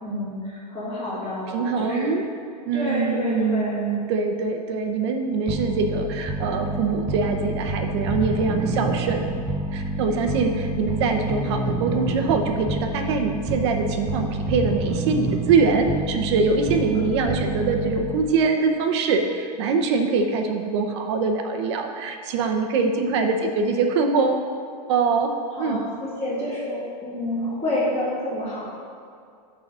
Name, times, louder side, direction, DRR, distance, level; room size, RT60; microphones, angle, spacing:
voice 1, 0.0-2.2 2.7-3.8 10.7-11.1 17.0-17.2 25.5-28.6, left 1 dB, 10° left, -13 dB, 2.2 m, -29 dB
voice 2, 1.5-2.3 2.7-9.3 9.7-24.4 24.9-25.3 25.6-25.8, right 4 dB, 40° right, 5 dB, 0.8 m, -23 dB
sound 1, 5.5-18.4, right 2 dB, 5° right, 0.4 m, -28 dB
11.5 x 4.0 x 6.1 m, 2.3 s
supercardioid pair, 175°, 21 cm